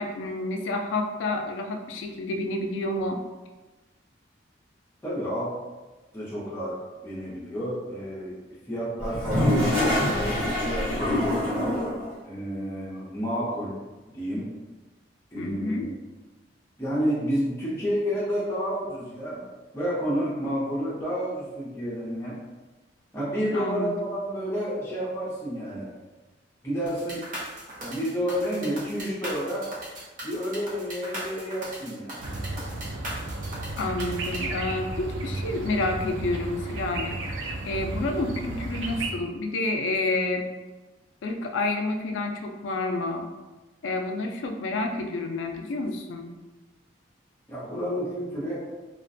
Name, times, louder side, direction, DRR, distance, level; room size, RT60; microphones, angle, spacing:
voice 1, 0.0-3.2 15.4-15.9 23.5-23.9 33.8-37.2 37.6-40.5 41.2-43.3 43.8-46.3, left 2 dB, 80° left, 4 dB, 0.3 m, -29 dB
voice 2, 5.0-5.6 6.1-8.4 8.7-9.6 10.0-11.3 12.2-14.5 15.3-15.9 16.8-19.4 19.7-22.4 23.1-25.9 26.6-27.3 27.8-29.7 30.2-32.3 47.5-48.7, equal, 15° left, -8 dB, 0.6 m, -30 dB
Toilet flush, 9.0-12.1, left 1 dB, 25° right, 1.1 m, -25 dB
sound 1, 26.9-34.4, right 1 dB, 45° right, 0.7 m, -38 dB
sound 2, 32.2-39.1, right 2 dB, 90° right, 0.4 m, -33 dB
2.4 x 2.1 x 2.5 m, 1.2 s
head